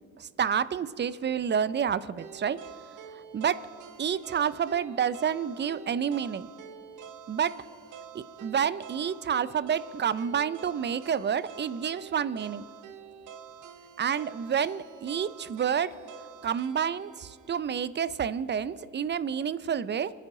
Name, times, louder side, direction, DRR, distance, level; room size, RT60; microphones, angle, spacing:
voice 1, 0.2-2.6 3.1-3.6 4.0-6.5 7.3-7.6 8.1-12.6 14.0-15.9 16.4-20.1, right 8 dB, 35° right, 17 dB, 0.6 m, -29 dB
sound 1, 2.2-18.3, right 7 dB, 80° right, 1.0 m, -48 dB
24.0 x 9.9 x 3.8 m, 2.6 s
cardioid pair, 90°, 30 cm